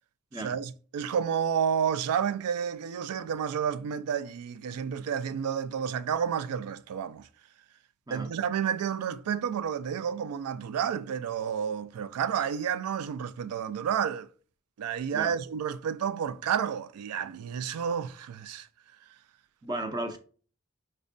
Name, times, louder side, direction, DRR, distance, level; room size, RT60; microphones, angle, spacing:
voice 1, 0.3-7.3 8.1-14.3 14.8-18.7, right 8 dB, 85° right, 0.3 m, -30 dB
voice 2, 19.6-20.2, right 1 dB, 15° right, 0.4 m, -34 dB
5.1 x 2.2 x 2.5 m
head